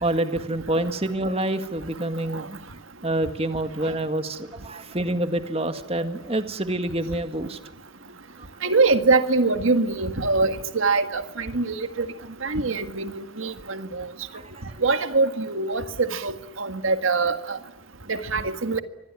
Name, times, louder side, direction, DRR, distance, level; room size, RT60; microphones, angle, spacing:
voice 1, 0.0-2.6 3.0-7.6 14.3-14.8, right 1 dB, 30° right, 1.8 m, -27 dB
voice 2, 8.6-12.1 12.4-13.1 13.4-14.1 14.8-17.6 18.1-18.8, right 3 dB, 85° right, 1.7 m, -23 dB
25.0 x 21.5 x 9.7 m
head